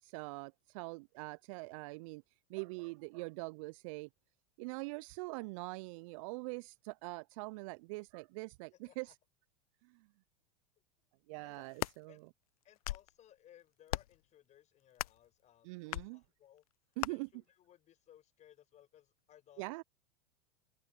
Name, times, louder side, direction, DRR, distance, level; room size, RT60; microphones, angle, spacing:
voice 1, 0.0-2.2 2.5-4.1 4.6-9.1 9.8-10.1 11.3-12.3 15.6-16.2 17.0-17.3 19.6-19.8, right 26 dB, 55° right, 0.8 m, -43 dB
sound 1, 11.5-12.0 12.6-13.1 13.9-14.2 15.0-15.3 15.9-16.1 17.0-17.1, left 16 dB, 65° left, 0.6 m, -38 dB
voice 2, 12.6-16.6 17.1-19.8, left 11 dB, 35° left, 6.9 m, -63 dB
hypercardioid pair, 85°, 20 cm